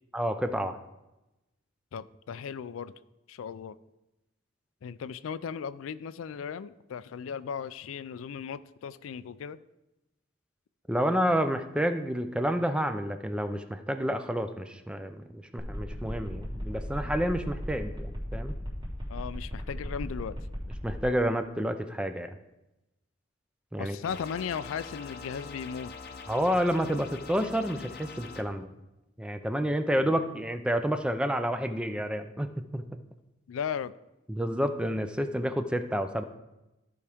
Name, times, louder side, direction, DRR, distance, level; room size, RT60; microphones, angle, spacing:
voice 1, 0.1-0.8 10.9-18.5 20.8-22.4 23.7-24.0 26.3-28.7 29.2-32.9 34.3-36.2, equal, 5° right, 8 dB, 0.4 m, -29 dB
voice 2, 1.9-2.9 3.3-3.8 4.8-9.6 19.1-20.4 23.8-25.9 30.0-30.1 33.5-33.9, left 7 dB, 85° left, 15 dB, 0.4 m, -36 dB
sound 1, 15.6-21.0, equal, 25° right, 1.9 m, -36 dB
sound 2, 24.0-28.4, left 4 dB, 50° left, 0.7 m, -44 dB
14.0 x 4.8 x 3.5 m, 0.97 s
head